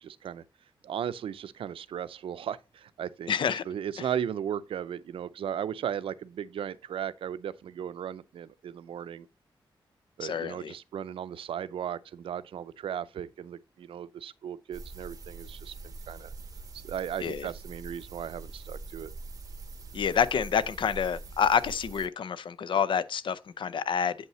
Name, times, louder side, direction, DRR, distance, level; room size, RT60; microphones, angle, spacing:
voice 1, 0.0-0.4 0.8-3.3 3.7-9.3 10.2-16.3 16.8-19.1, right 9 dB, 85° right, 0.4 m, -36 dB
voice 2, 3.3-3.6 10.2-10.7 17.2-17.5 19.9-24.1, left 7 dB, 65° left, 0.5 m, -28 dB
sound 1, 14.7-22.1, right 3 dB, 40° right, 0.9 m, -44 dB
8.0 x 5.5 x 3.1 m
wide cardioid pair, 110°, 9 cm